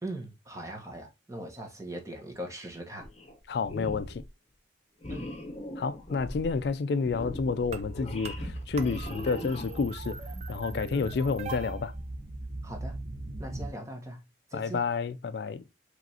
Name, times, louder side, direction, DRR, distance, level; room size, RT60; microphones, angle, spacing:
voice 1, 0.0-3.1 5.1-5.3 10.9-11.1 12.6-13.0 13.4-14.2 14.5-14.8, right 1 dB, 15° right, 1.1 m, -40 dB
sound 1, 3.0-3.4 3.6-4.3 5.0-10.0, left 1 dB, 35° left, 0.9 m, -40 dB
voice 2, 3.5-4.2 5.8-11.9 14.5-15.6, left 4 dB, 60° left, 0.3 m, -30 dB
sound 2, 7.7-13.7, right 2 dB, 35° right, 0.5 m, -38 dB
5.0 x 3.1 x 2.7 m
head